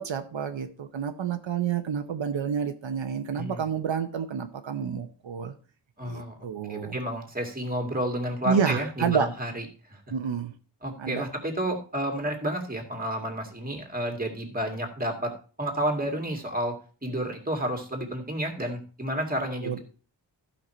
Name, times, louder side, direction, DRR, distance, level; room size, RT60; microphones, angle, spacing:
voice 1, 0.0-5.5 6.1-7.0 8.4-9.3 10.1-10.5 11.0-11.2 19.6-19.8, right 7 dB, 85° right, 6 dB, 1.1 m, -29 dB
voice 2, 6.0-6.4 6.7-9.7 9.9-10.0 10.8-19.8, right 1 dB, 20° right, 3 dB, 2.3 m, -31 dB
14.0 x 5.8 x 4.5 m, 0.38 s
wide cardioid pair, 130°, 44 cm